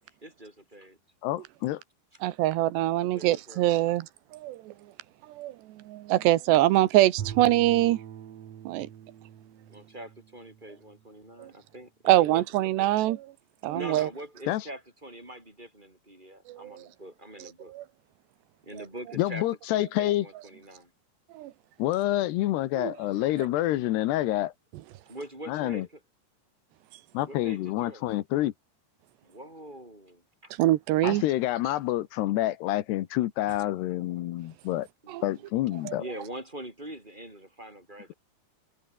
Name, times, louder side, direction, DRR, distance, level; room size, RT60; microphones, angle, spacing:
voice 1, 0.2-1.0 3.1-3.7 9.7-12.9 13.7-17.7 18.6-20.9 25.1-26.0 27.2-28.0 29.2-30.5 35.0-35.4 35.9-38.1, right 1 dB, 10° right, 7.9 m, -43 dB
voice 2, 1.2-1.8 14.5-14.6 19.2-20.3 21.8-24.5 25.5-25.9 27.1-28.5 31.0-34.9 35.2-36.0, left 15 dB, 80° left, 3.1 m, -27 dB
voice 3, 2.2-4.1 4.3-4.7 5.3-8.0 8.7-8.9 11.4-11.5 12.1-13.3 13.6-14.1 16.5-16.7 17.7-17.8 21.3-21.5 22.8-22.9 30.6-31.2 35.1-35.2 35.9-36.0, right 15 dB, 90° right, 3.3 m, -24 dB
Bowed string instrument, 7.2-11.4, right 10 dB, 55° right, 2.1 m, -43 dB
omnidirectional pair, 4.8 m